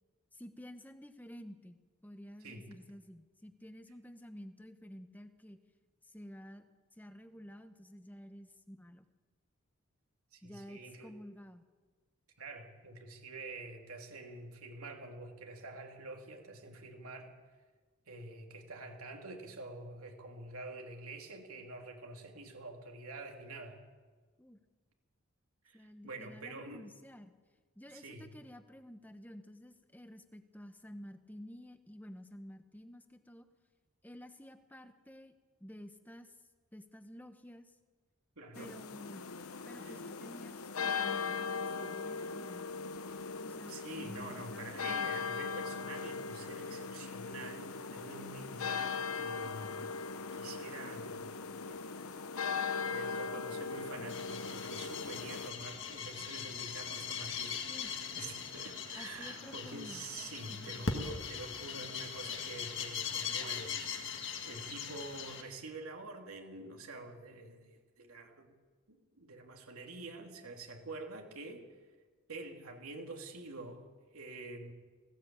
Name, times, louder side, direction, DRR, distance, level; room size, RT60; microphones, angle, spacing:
voice 1, 0.3-1.8 2.0-5.6 6.0-9.0 10.4-11.6 24.4-24.6 25.7-27.3 27.8-33.5 34.0-36.3 36.7-37.8 38.5-39.3 39.6-42.6 43.4-45.1 47.9-48.3 57.7-58.0 58.9-60.1 60.5-60.8, equal, 10° left, 8 dB, 1.1 m, -51 dB
voice 2, 10.3-11.1 12.4-17.3 18.1-23.8 25.6-26.8 27.9-28.3 38.4-38.8 39.8-40.0 43.7-49.9 50.3-51.3 51.6-57.6 58.2-63.8 64.0-68.5 68.9-71.7 72.3-74.7, right 2 dB, 85° right, 2 dB, 2.8 m, -47 dB
sound 1, 38.5-55.5, left 5 dB, 85° left, 1.0 m, -39 dB
sound 2, 54.1-65.4, left 6 dB, 55° left, 2.0 m, -40 dB
19.0 x 16.0 x 8.7 m, 1.4 s
head